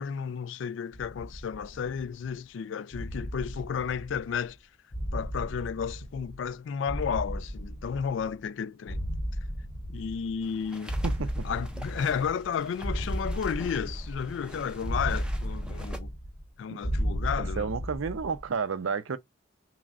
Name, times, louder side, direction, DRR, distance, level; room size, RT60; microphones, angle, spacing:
voice 1, 0.0-4.6 5.1-9.0 9.9-11.0 11.4-16.1 16.6-17.7, left 7 dB, 65° left, 0.3 m, -32 dB
sound 1, 0.9-2.3 2.9-4.5 4.9-6.5 6.9-8.4 8.9-10.5 10.9-12.5 12.8-14.4 14.8-16.5 16.8-18.4, equal, 30° left, 0.8 m, -34 dB
sound 2, 10.4-16.0, equal, 5° right, 0.5 m, -44 dB
voice 2, 11.0-11.5 17.4-19.2, right 5 dB, 80° right, 0.5 m, -31 dB
5.9 x 2.1 x 2.4 m
head